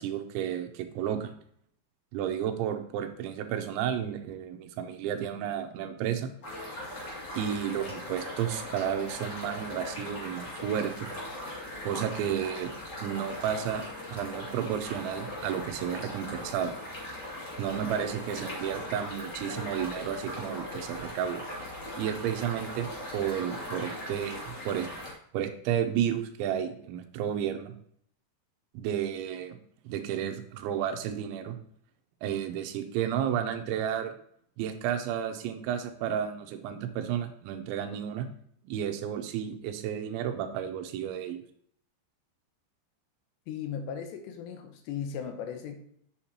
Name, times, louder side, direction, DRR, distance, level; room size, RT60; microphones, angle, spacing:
voice 1, 0.0-1.3 2.1-6.3 7.3-11.1 11.8-12.7 13.0-13.8 14.1-16.7 17.6-21.4 22.0-22.9 23.1-24.9 25.3-27.7 28.7-29.6 29.8-31.6 32.2-34.1 34.6-38.3 38.6-41.4, right 9 dB, 85° right, 7 dB, 3.2 m, -32 dB
sound 1, 6.4-25.1, left 1 dB, 30° left, 2.1 m, -39 dB
voice 2, 43.5-45.8, left 7 dB, 80° left, 6 dB, 2.9 m, -37 dB
8.4 x 7.1 x 2.9 m, 0.64 s
omnidirectional pair, 5.3 m